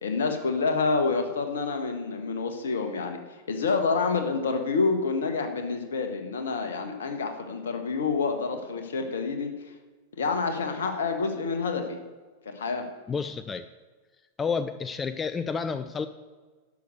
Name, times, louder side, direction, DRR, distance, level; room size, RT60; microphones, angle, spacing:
voice 1, 0.0-9.5 10.2-12.0 12.4-12.9, left 4 dB, 65° left, 6 dB, 1.4 m, -28 dB
voice 2, 13.1-13.6 14.4-16.1, left 5 dB, 20° left, 11 dB, 0.4 m, -30 dB
11.0 x 6.5 x 6.6 m, 1.4 s
figure-of-eight pair, 90°, 0 cm